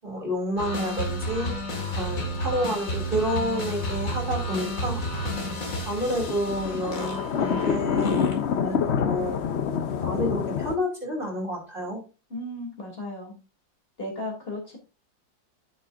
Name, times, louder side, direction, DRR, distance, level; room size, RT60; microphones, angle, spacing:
voice 1, 0.0-1.6 1.9-5.0 5.8-9.4 10.0-12.0, equal, 25° right, 0 dB, 2.8 m, -29 dB
sound 1, 0.6-8.6, equal, 45° left, 2.4 m, -31 dB
sound 2, 3.0-10.8, left 7 dB, 80° left, 0.6 m, -28 dB
voice 2, 12.3-13.3 14.0-14.8, left 1 dB, 30° left, -1 dB, 3.3 m, -35 dB
9.4 x 8.4 x 2.6 m, 0.32 s
omnidirectional pair, 2.0 m